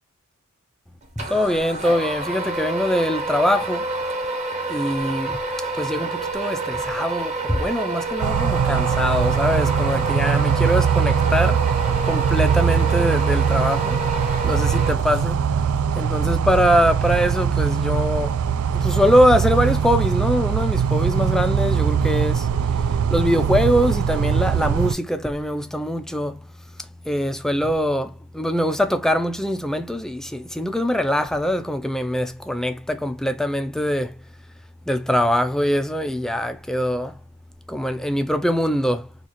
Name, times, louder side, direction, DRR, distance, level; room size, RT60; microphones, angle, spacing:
voice 1, 1.2-3.9 4.7-5.4 5.8-11.6 12.0-14.0 14.4-15.4 15.9-18.4 18.7-22.5 23.1-26.4 27.1-34.2 34.9-37.1 37.7-39.3, equal, ahead, 0.3 m, -22 dB
sound 1, 1.2-15.5, right 3 dB, 30° right, 1.0 m, -28 dB
sound 2, 8.2-24.9, right 7 dB, 75° right, 0.3 m, -21 dB
3.8 x 2.4 x 3.0 m
head